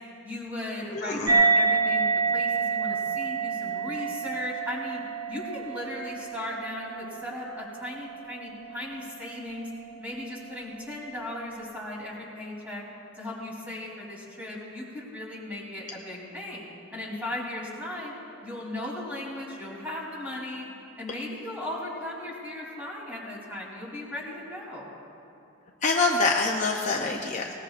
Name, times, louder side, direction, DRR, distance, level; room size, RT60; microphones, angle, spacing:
voice 1, 0.2-5.0 5.3-9.7 10.0-12.8 13.1-16.7 16.9-18.1 18.4-20.7 21.0-24.9 26.7-27.3, left 1 dB, 5° right, -5 dB, 3.4 m, -37 dB
voice 2, 0.9-1.3 25.8-27.5, left 3 dB, 35° left, 0 dB, 0.7 m, -25 dB
sound 1, 1.3-8.2, right 4 dB, 50° right, 1.5 m, -27 dB
21.0 x 19.0 x 2.5 m, 2.7 s
head